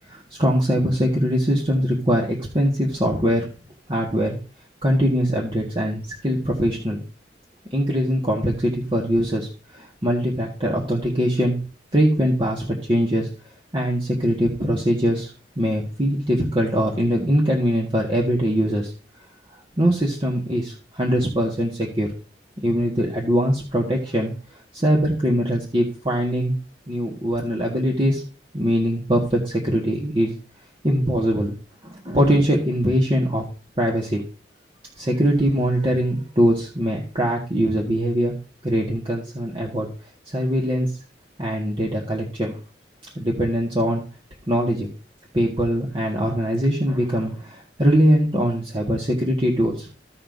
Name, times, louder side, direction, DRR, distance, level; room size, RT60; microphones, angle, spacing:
voice 1, 0.1-3.4 3.9-4.4 4.8-7.0 7.7-11.6 11.9-13.3 13.7-18.9 19.8-22.1 22.6-24.3 24.7-26.6 26.9-28.2 28.5-30.3 30.8-31.5 31.8-33.4 33.8-34.2 35.0-38.3 38.6-39.9 40.2-40.9 41.4-42.5 43.1-44.0 44.5-44.9 45.3-49.9, equal, 30° right, -2 dB, 1.7 m, -22 dB
16.0 x 5.6 x 2.7 m, 0.36 s
head